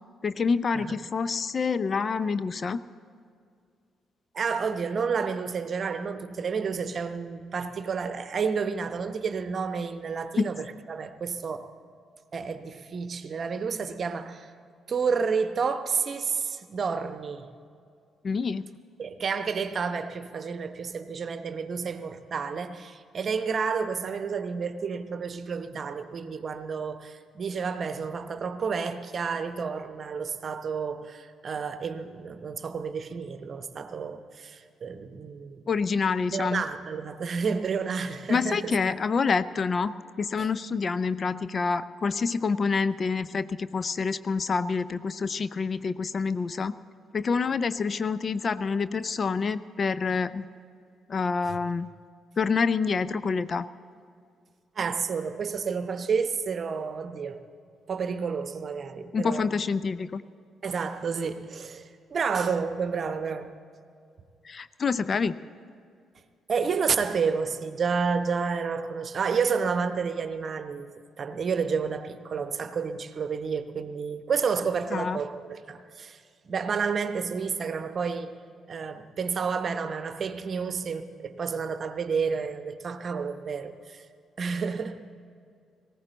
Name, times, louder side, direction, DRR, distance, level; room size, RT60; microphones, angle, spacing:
voice 1, 0.2-2.8 10.4-10.5 18.2-18.8 35.7-36.6 38.3-46.7 47.1-50.5 51.1-51.9 52.4-53.7 59.1-60.2 64.4-65.4 74.9-75.2, left 5 dB, 45° left, 15 dB, 0.5 m, -27 dB
voice 2, 4.3-11.7 12.3-14.5 14.9-17.5 19.0-35.7 36.3-38.9 40.4-40.5 51.4-51.6 54.8-57.4 57.9-59.5 60.6-63.5 66.5-70.9 71.2-78.4 78.7-84.0 84.4-85.0, right 5 dB, 45° right, 10 dB, 0.9 m, -30 dB
19.5 x 17.0 x 4.0 m, 2.3 s
figure-of-eight pair, 40°, 0 cm